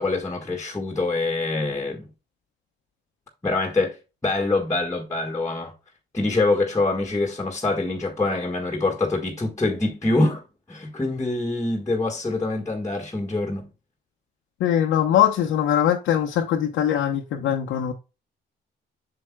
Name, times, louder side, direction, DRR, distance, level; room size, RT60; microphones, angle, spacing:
voice 1, 0.0-2.1 3.4-4.0 4.2-5.7 6.1-10.4 10.7-13.7, left 2 dB, 15° left, 1.5 m, -25 dB
voice 2, 14.6-17.9, left 10 dB, 85° left, 0.9 m, -21 dB
7.7 x 6.9 x 2.2 m
cardioid pair, 90°, 20 cm